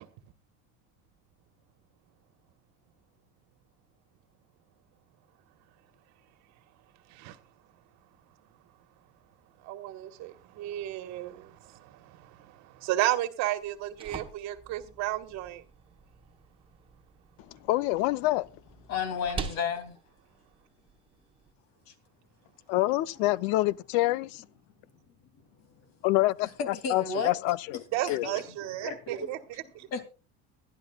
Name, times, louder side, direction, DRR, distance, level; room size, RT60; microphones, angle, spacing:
voice 1, 9.7-11.5 12.8-15.6 27.9-29.4, right 14 dB, 60° right, 1.4 m, -32 dB
sound 1, 13.6-21.5, right 5 dB, 15° right, 1.0 m, -45 dB
voice 2, 17.7-18.5 22.7-24.4 26.0-27.8 28.1-28.4, left 18 dB, 80° left, 0.6 m, -26 dB
voice 3, 18.9-20.0 21.9-22.0 25.6-25.7 26.6-27.4 28.1-29.3 29.9-30.0, left 5 dB, 55° left, 2.7 m, -33 dB
23.0 x 11.0 x 2.3 m
cardioid pair, 155°, 31 cm